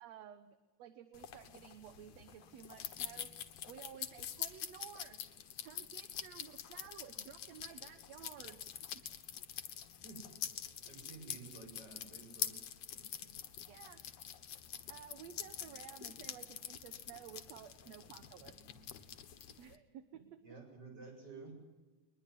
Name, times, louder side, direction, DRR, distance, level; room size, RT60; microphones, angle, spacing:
voice 1, 0.0-3.3 3.7-5.2 5.6-8.6 8.9-9.0 13.7-14.0 14.9-18.8 19.6-20.4, right 10 dB, 65° right, 10 dB, 2.2 m, -54 dB
sound 1, 1.1-19.8, left 9 dB, 60° left, 2.3 m, -46 dB
voice 2, 10.8-12.5 12.9-13.0 20.4-21.5, right 4 dB, 30° right, 3 dB, 8.1 m, -52 dB
23.5 x 21.0 x 10.0 m, 1.2 s
omnidirectional pair, 3.5 m